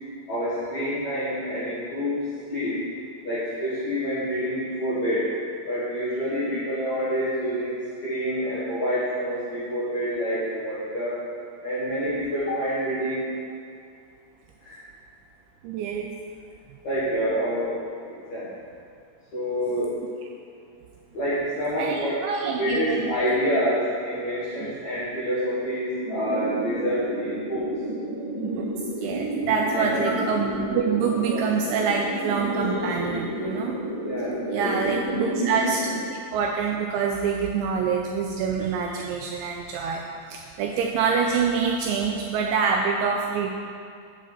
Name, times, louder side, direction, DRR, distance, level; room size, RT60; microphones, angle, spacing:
voice 1, 0.3-2.8 3.2-5.3 5.7-11.2 11.6-13.3 14.6-14.8 16.8-17.8 18.1-18.5 19.3-20.0 21.1-22.2 22.5-27.7 29.7-30.2 31.3-31.4 34.0-35.0, equal, 65° left, -12 dB, 1.9 m, -27 dB
voice 2, 15.6-16.1 21.8-23.3 24.6-24.7 28.4-28.7 29.0-33.7 34.5-43.5, right 5 dB, 85° right, 0 dB, 2.7 m, -26 dB
sound 1, 26.0-36.0, right 1 dB, 60° right, 3.1 m, -30 dB
7.9 x 4.9 x 7.3 m, 2.3 s
omnidirectional pair, 5.7 m